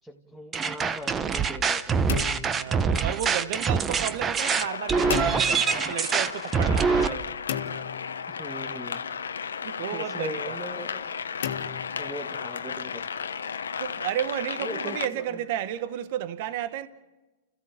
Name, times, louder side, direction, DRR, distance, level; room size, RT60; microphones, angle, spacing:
voice 1, 0.0-2.1 6.6-7.4 8.3-9.0 9.9-11.2 12.0-13.0 14.6-15.4, equal, 5° right, 1.9 m, -40 dB
sound 1, 0.5-7.1, right 5 dB, 20° right, 1.0 m, -25 dB
sound 2, 2.1-3.4 5.1-6.1 7.5-8.7 11.4-12.6, left 9 dB, 70° left, 1.7 m, -35 dB
voice 2, 2.5-7.2 9.6-10.6 13.8-16.9, right 11 dB, 55° right, 1.0 m, -32 dB
sound 3, 4.4-15.1, left 6 dB, 90° left, 1.0 m, -34 dB
30.0 x 15.5 x 7.5 m
hypercardioid pair, 120°, 0 cm